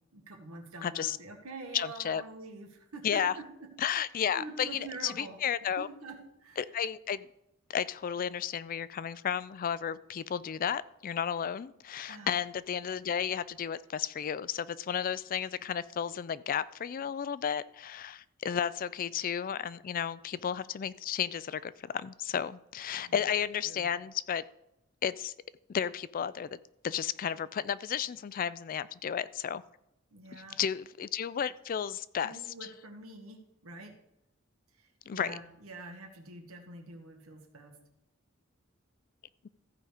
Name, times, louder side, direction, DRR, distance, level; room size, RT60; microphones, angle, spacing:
voice 1, 0.1-4.1 4.3-5.4 5.8-6.6 12.1-12.4 23.0-23.2 23.7-23.9 30.1-30.6 32.2-33.9 34.7-37.8, right 2 dB, 85° right, 3 dB, 1.8 m, -46 dB
voice 2, 0.8-1.2 1.7-2.2 3.0-3.3 3.8-4.7 5.0-5.9 6.6-7.3 7.7-24.4 25.0-25.3 25.7-26.5 26.8-29.6 30.3-32.4 35.1-35.3, left 8 dB, 40° left, 17 dB, 0.3 m, -33 dB
14.5 x 5.1 x 4.9 m, 0.83 s
head